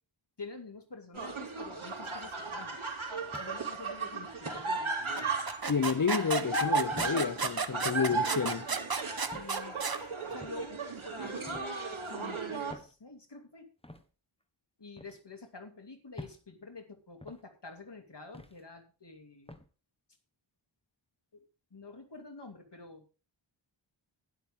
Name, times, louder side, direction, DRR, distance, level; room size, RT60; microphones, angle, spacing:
voice 1, 0.4-2.9 3.3-4.9 7.1-7.4 9.3-9.9 10.3-13.7 14.8-19.6 21.3-23.1, left 3 dB, 60° left, 2.9 m, -48 dB
sound 1, 1.1-12.7, right 3 dB, 85° right, 3.4 m, -36 dB
sound 2, 3.3-3.8 4.5-4.7 5.7-5.9 6.9-7.2 8.1-8.4 9.3-9.6 10.4-10.7 11.5-11.7 12.7-12.9 13.8-14.0 15.0-15.2 16.2-16.4 17.2-17.4 18.3-18.6 19.5-19.7, left 1 dB, 10° left, 1.3 m, -47 dB
sound 3, 5.2-10.0, right 4 dB, 50° right, 1.1 m, -33 dB
voice 2, 5.7-8.7, left 6 dB, 40° left, 0.8 m, -30 dB
12.5 x 10.5 x 3.7 m
wide cardioid pair, 60°, 48 cm